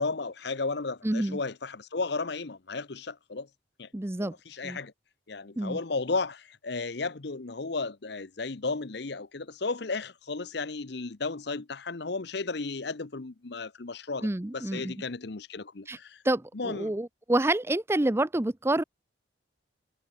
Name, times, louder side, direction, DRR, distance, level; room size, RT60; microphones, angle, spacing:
voice 1, 0.0-3.5 3.8-3.9 4.2-4.9 5.3-14.3 14.5-16.2 16.5-16.9, left 3 dB, 55° left, 0.8 m, -34 dB
voice 2, 1.0-1.4 3.9-4.3 4.6-4.8 5.6-5.8 14.2-14.9 15.9-16.0 16.2-18.8, right 1 dB, 15° right, 0.5 m, -28 dB
head